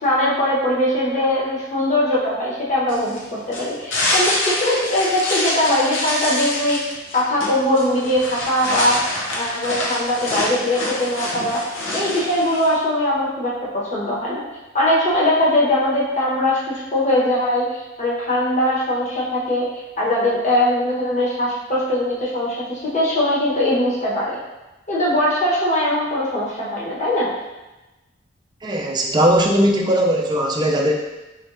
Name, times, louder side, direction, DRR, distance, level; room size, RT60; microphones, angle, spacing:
voice 1, 0.0-11.6 11.9-13.5 13.8-14.4 14.7-19.7 20.0-24.4 24.9-27.3, left 1 dB, 40° left, -6 dB, 1.1 m, -21 dB
sound 1, 2.9-12.8, left 1 dB, 80° left, 0.7 m, -26 dB
voice 2, 28.6-30.9, equal, 25° right, -1 dB, 0.5 m, -18 dB
4.4 x 3.1 x 2.6 m, 1.1 s
head